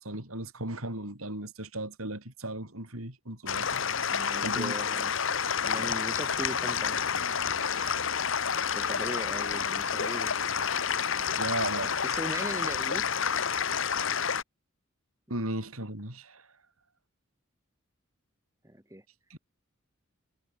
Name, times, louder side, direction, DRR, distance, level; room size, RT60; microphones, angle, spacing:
voice 1, 0.0-4.7 5.8-5.9 7.7-8.0 11.4-12.0 15.3-16.5 19.3-19.4, right 1 dB, 85° right, 7.8 m, -37 dB
sound 1, 3.5-14.4, left 7 dB, 60° left, 1.1 m, -29 dB
voice 2, 4.1-5.1 5.6-7.0 8.7-10.3 11.7-13.2 18.6-19.0, right 1 dB, 15° right, 6.6 m, -39 dB
head